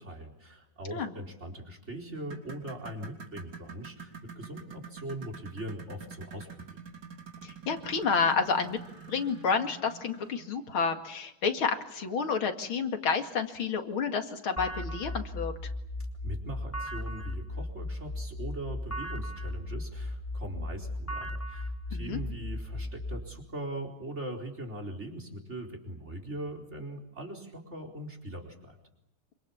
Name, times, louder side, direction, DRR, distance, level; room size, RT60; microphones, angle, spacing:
voice 1, 0.0-6.5 16.2-28.8, right 1 dB, 30° right, 2 dB, 4.6 m, -41 dB
sound 1, 2.1-10.6 12.0-12.1 12.6-12.7 13.3-13.4, right 5 dB, 60° right, 4.0 m, -47 dB
voice 2, 7.4-8.8 9.1-15.7 21.9-22.2, left 5 dB, 85° left, 6 dB, 3.0 m, -30 dB
sound 2, 14.6-23.2, left 1 dB, 10° left, 1.2 m, -36 dB
27.5 x 25.0 x 7.2 m, 0.86 s
omnidirectional pair, 2.2 m